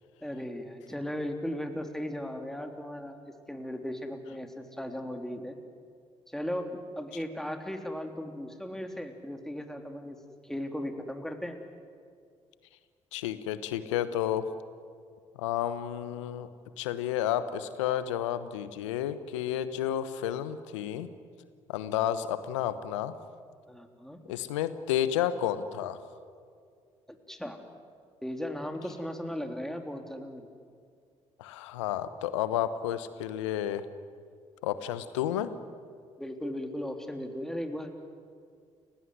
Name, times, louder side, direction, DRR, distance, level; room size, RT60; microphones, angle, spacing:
voice 1, 0.2-3.2 3.5-5.6 6.3-10.2 10.4-11.6 23.7-24.2 27.1-27.6 28.2-30.5 36.2-37.9, equal, 5° left, 5 dB, 3.4 m, -37 dB
voice 2, 13.1-14.5 15.3-16.5 16.8-21.1 21.7-23.1 24.3-26.0 31.4-33.8 34.6-35.5, left 11 dB, 80° left, 13 dB, 1.2 m, -31 dB
29.5 x 16.5 x 9.6 m, 2.2 s
hypercardioid pair, 45°, 15 cm